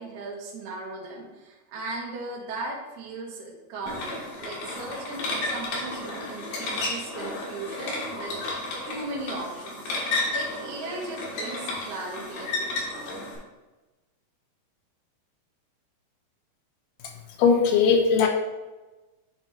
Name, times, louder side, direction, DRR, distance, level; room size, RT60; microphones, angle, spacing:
voice 1, 0.0-8.4 8.9-13.2, right 2 dB, 60° right, -3 dB, 2.4 m, -37 dB
sound 1, 3.9-13.4, left 2 dB, 65° left, 3.1 m, -32 dB
voice 2, 17.4-18.3, left 5 dB, 85° left, 2 dB, 3.0 m, -19 dB
10.0 x 4.3 x 3.1 m, 1.1 s
omnidirectional pair, 4.6 m